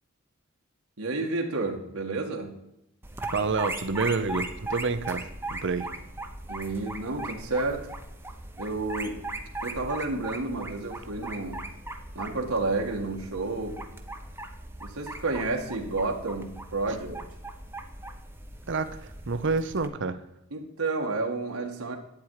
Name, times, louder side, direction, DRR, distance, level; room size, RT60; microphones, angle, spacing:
voice 1, 1.0-2.5 6.5-7.9 8.6-9.3 9.6-11.6 12.2-13.8 14.8-17.2 20.5-22.0, right 3 dB, 80° right, 1 dB, 1.8 m, -30 dB
sound 1, 3.0-19.9, right 2 dB, 10° right, 0.9 m, -39 dB
voice 2, 3.3-5.9 18.7-20.2, right 4 dB, 60° right, 10 dB, 0.8 m, -28 dB
11.5 x 8.9 x 4.8 m, 0.84 s
head